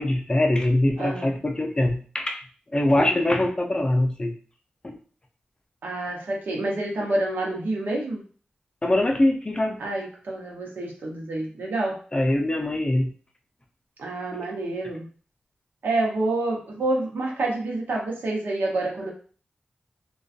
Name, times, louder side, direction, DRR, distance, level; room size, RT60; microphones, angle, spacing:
voice 1, 0.0-2.4 2.7-4.4 4.8-5.0 8.8-9.8 12.1-13.1, left 1 dB, 25° left, 4 dB, 0.5 m, -23 dB
voice 2, 1.0-1.3 3.0-3.2 5.8-8.2 9.8-12.0 14.0-15.1 15.8-19.1, right 2 dB, 80° right, -1 dB, 0.7 m, -28 dB
2.5 x 2.3 x 2.3 m, 0.41 s
cardioid pair, 60°, 3 cm